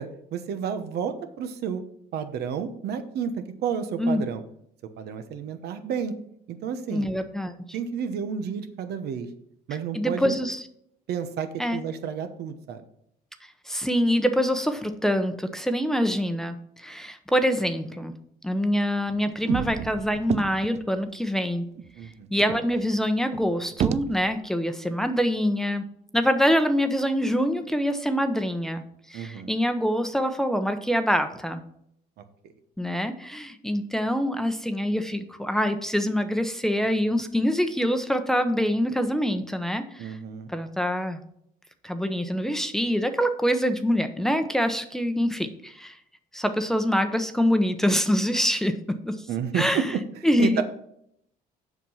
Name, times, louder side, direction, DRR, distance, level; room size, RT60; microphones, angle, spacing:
voice 1, 0.0-1.8 2.1-4.4 5.0-6.1 6.5-7.1 7.7-9.3 9.7-10.4 11.1-12.8 21.9-22.4 29.1-29.5 40.0-40.5 49.3-50.6, right 7 dB, 70° right, 9 dB, 1.0 m, -31 dB
voice 2, 6.9-7.5 9.9-10.6 11.6-11.8 13.7-18.1 18.4-21.6 22.3-25.9 26.1-28.8 29.1-31.6 32.8-40.2 40.5-41.2 41.8-45.9 46.3-49.2 49.5-49.8 50.2-50.6, equal, 5° left, 7 dB, 0.8 m, -25 dB
sound 1, 19.1-21.0 21.5-21.6 21.8-21.9 22.4-24.4, right 9 dB, 40° right, 0.4 m, -31 dB
7.4 x 5.9 x 5.5 m, 0.72 s
cardioid pair, 110°, 17 cm